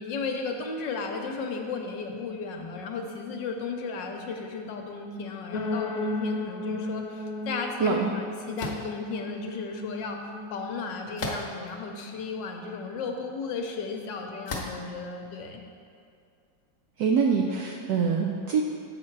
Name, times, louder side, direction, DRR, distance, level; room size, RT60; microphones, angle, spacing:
voice 1, 0.0-10.2 10.5-15.6, left 4 dB, 70° left, 3 dB, 1.3 m, -34 dB
sound 1, 5.5-11.4, left 1 dB, 85° left, 0.7 m, -35 dB
voice 2, 7.8-8.1 17.0-18.6, right 6 dB, 75° right, 0 dB, 0.9 m, -24 dB
sound 2, 8.6-8.9 11.2-11.7 12.4-12.5 14.5-14.9, left 2 dB, 45° left, 1.1 m, -34 dB
7.4 x 6.4 x 4.5 m, 2.4 s
omnidirectional pair, 2.2 m